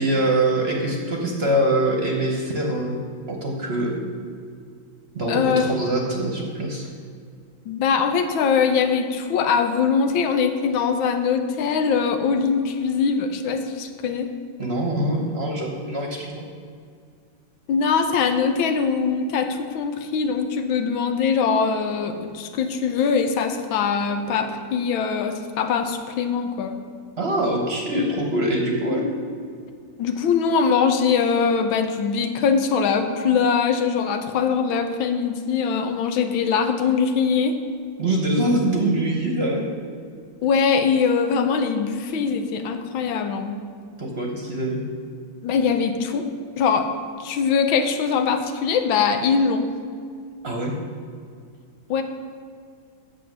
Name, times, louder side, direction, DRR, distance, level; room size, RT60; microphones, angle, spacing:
voice 1, 0.0-3.0 3.3-4.0 5.1-6.9 14.6-16.4 27.2-29.1 38.0-39.7 44.0-44.8 50.4-50.7, right 1 dB, 40° right, 0 dB, 1.1 m, -23 dB
voice 2, 5.3-5.6 7.6-14.3 17.7-26.7 30.0-37.6 40.4-43.6 45.4-46.3 46.6-46.9 47.2-49.7 51.9-52.0, left 6 dB, 90° left, 7 dB, 1.6 m, -22 dB
8.4 x 7.0 x 6.1 m, 2.2 s
omnidirectional pair, 2.1 m